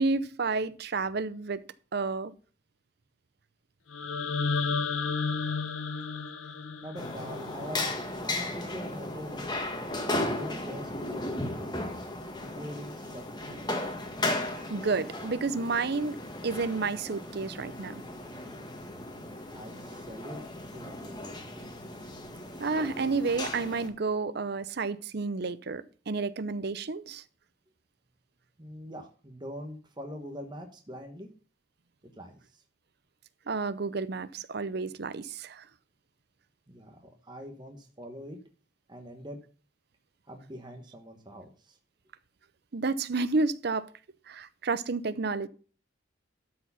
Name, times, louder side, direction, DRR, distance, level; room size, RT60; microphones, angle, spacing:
voice 1, 0.0-1.6 1.9-2.3 14.7-16.2 16.4-18.0 22.6-27.2 33.5-35.6 42.7-43.9 44.3-45.5, right 4 dB, 55° right, 0.6 m, -30 dB
sound 1, 3.9-8.0, left 4 dB, 90° left, 1.0 m, -32 dB
voice 2, 6.8-7.9 8.2-9.7 10.3-11.8 12.3-13.7 19.5-20.4 20.7-21.7 28.6-31.3 32.1-32.6 36.7-38.4 38.9-39.4 40.3-41.8, equal, 25° right, 1.2 m, -43 dB
sound 2, 7.0-23.9, left 2 dB, 20° left, 1.4 m, -36 dB
12.5 x 4.8 x 5.6 m
head